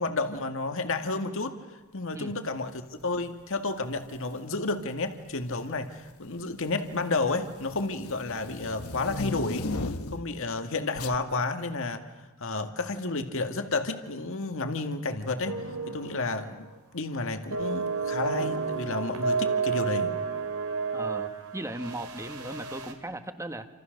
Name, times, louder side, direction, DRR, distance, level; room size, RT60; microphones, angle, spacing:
voice 1, 0.0-1.6 1.9-9.7 10.1-12.0 12.4-16.7 16.9-20.1, left 3 dB, 65° left, 7 dB, 2.0 m, -31 dB
sound 1, 4.0-4.3 5.3-5.7 6.1-10.4 11.0-11.2, left 3 dB, 85° left, 1.4 m, -36 dB
sound 2, 15.4-16.2 16.5-16.8 17.5-22.9, right 5 dB, 90° right, 3.4 m, -31 dB
voice 2, 20.9-23.7, right 1 dB, 15° right, 8 dB, 1.6 m, -37 dB
29.0 x 27.0 x 6.6 m, 1.2 s
head